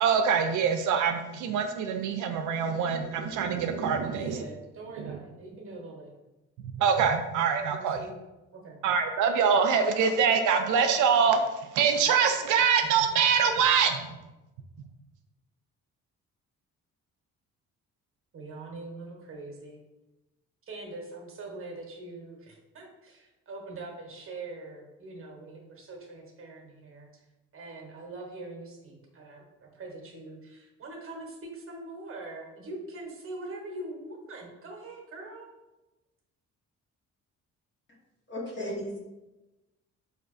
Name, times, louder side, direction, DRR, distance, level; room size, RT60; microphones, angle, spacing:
voice 1, 0.0-4.4 5.0-5.2 6.7-8.0 8.8-14.1, right 6 dB, 80° right, 6 dB, 0.4 m, -24 dB
voice 2, 4.0-6.1 7.7-8.1 8.5-8.8 18.3-19.8 20.7-27.2 27.5-35.5, right 2 dB, 45° right, 1 dB, 0.9 m, -43 dB
voice 3, 38.3-39.0, equal, 40° left, -2 dB, 1.0 m, -35 dB
4.2 x 2.7 x 2.4 m, 1.0 s
cardioid pair, 90°, 30 cm